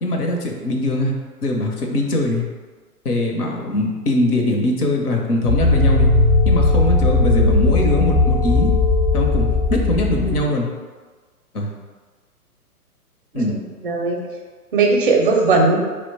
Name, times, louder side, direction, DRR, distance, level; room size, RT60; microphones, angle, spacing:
voice 1, 0.0-1.1 1.4-2.4 3.0-6.1 6.5-8.7 9.1-10.7 11.5-11.7 13.3-13.6, left 1 dB, 75° left, 1 dB, 0.8 m, -21 dB
sound 1, 5.5-10.4, left 3 dB, 20° left, 0.3 m, -17 dB
voice 2, 13.3-14.2 14.7-15.8, right 3 dB, 35° right, 1 dB, 0.5 m, -18 dB
2.8 x 2.1 x 4.1 m, 1.4 s
figure-of-eight pair, 120°, 46 cm